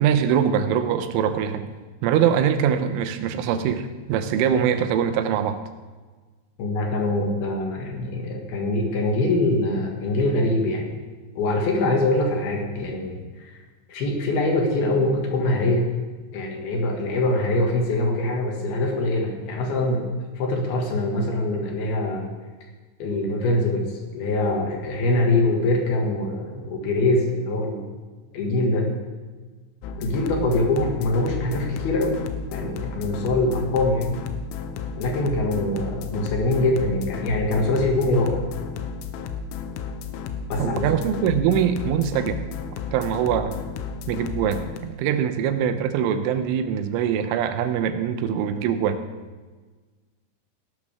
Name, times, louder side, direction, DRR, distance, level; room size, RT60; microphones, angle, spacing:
voice 1, 0.0-1.7 2.0-5.6 40.6-42.5 42.9-43.6 44.1-49.0, right 8 dB, 80° right, 9 dB, 3.3 m, -23 dB
voice 2, 6.6-10.9 11.3-13.2 13.9-15.9 16.3-20.1 20.4-22.3 23.0-23.9 24.1-27.8 28.3-28.9 30.0-32.2 32.5-34.2 35.0-38.4 40.5-40.8, left 2 dB, 60° left, 1 dB, 3.4 m, -23 dB
sound 1, 29.8-44.8, left 6 dB, 85° left, 3.3 m, -33 dB
17.5 x 12.0 x 3.6 m, 1.3 s
omnidirectional pair, 5.8 m